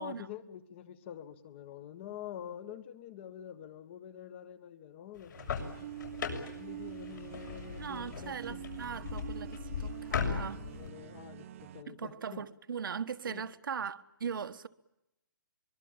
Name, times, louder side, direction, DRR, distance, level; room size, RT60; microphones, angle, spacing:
voice 1, 0.0-5.9 6.4-8.6 10.7-11.5 11.7-12.4 13.2-13.4, left 10 dB, 35° left, 1.6 m, -46 dB
sound 1, 5.2-10.9, left 6 dB, 60° left, 7.0 m, -38 dB
sound 2, 5.3-11.8, right 12 dB, 40° right, 1.0 m, -46 dB
voice 2, 7.8-10.7 11.9-14.7, right 7 dB, 75° right, 1.4 m, -39 dB
24.0 x 23.5 x 8.8 m
hypercardioid pair, 160°, 11 cm